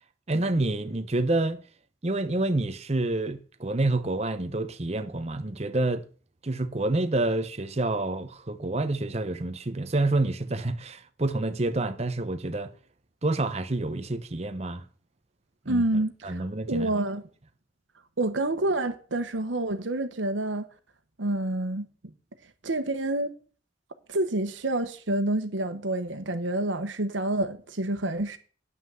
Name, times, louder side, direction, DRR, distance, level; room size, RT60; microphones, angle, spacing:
voice 1, 0.3-1.6 2.0-6.0 6.4-12.7 13.2-14.8 15.7-15.8 16.2-16.9, right 2 dB, 35° right, 0.8 m, -28 dB
voice 2, 15.7-17.2 18.2-20.6 21.2-21.9 22.6-23.3 24.1-28.4, right 2 dB, 90° right, 1.2 m, -28 dB
9.5 x 5.9 x 7.6 m
head